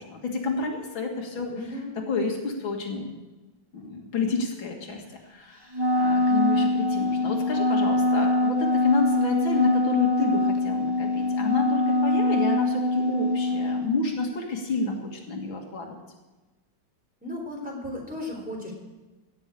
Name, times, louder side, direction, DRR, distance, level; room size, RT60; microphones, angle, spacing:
voice 1, 0.0-1.5 2.0-3.1 3.7-5.0 5.3-16.0, left 3 dB, 85° left, 1 dB, 2.8 m, -30 dB
voice 2, 1.5-2.0 17.2-18.7, left 1 dB, 5° right, -1 dB, 3.6 m, -35 dB
Wind instrument woodwind instrument, 5.7-13.9, left 2 dB, 25° right, 0.5 m, -23 dB
17.0 x 6.9 x 8.4 m, 1.1 s
omnidirectional pair, 2.1 m